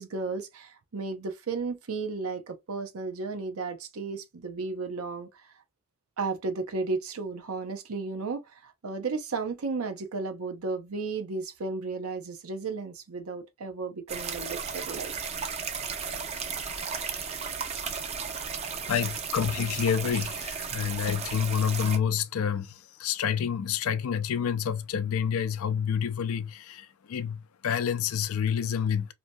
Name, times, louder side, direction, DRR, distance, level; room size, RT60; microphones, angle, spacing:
voice 1, 0.0-5.5 6.2-15.1, right 4 dB, 90° right, 0.6 m, -34 dB
sound 1, 14.1-22.0, right 6 dB, 30° right, 0.4 m, -35 dB
voice 2, 18.9-29.1, left 8 dB, 80° left, 0.4 m, -28 dB
2.7 x 2.2 x 2.6 m
head